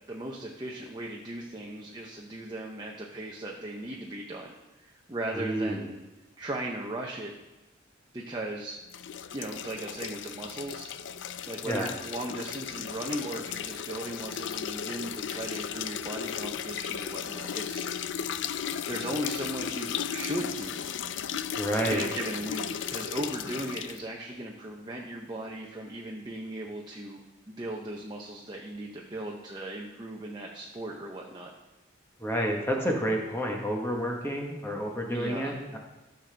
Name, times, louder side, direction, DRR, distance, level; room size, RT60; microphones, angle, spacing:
voice 1, 0.1-6.0 6.4-7.3 8.1-8.8 9.3-10.9 11.5-18.3 18.9-20.9 21.9-27.2 27.5-31.5 35.1-35.6, right 1 dB, 20° right, -1 dB, 0.7 m, -37 dB
voice 2, 5.3-5.9 11.6-11.9 21.6-22.1 32.2-35.8, equal, 10° left, 0 dB, 1.1 m, -29 dB
sound 1, 8.9-24.0, left 8 dB, 65° left, 0.4 m, -35 dB
14.0 x 6.7 x 3.4 m, 1.1 s
head